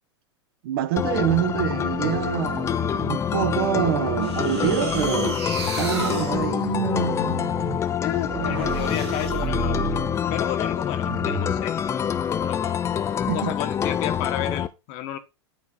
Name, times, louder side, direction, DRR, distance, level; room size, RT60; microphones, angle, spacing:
voice 1, 0.6-6.7 13.3-13.5, right 13 dB, 55° right, 0.8 m, -26 dB
sound 1, 1.0-14.7, left 8 dB, 20° left, 0.5 m, -26 dB
sound 2, 4.2-10.1 11.0-11.7, right 6 dB, 75° right, 1.9 m, -31 dB
voice 2, 8.0-10.0 10.3-11.8 12.4-12.8 13.3-15.2, left 12 dB, 45° left, 1.0 m, -32 dB
8.7 x 4.3 x 3.9 m
figure-of-eight pair, 95°, 14 cm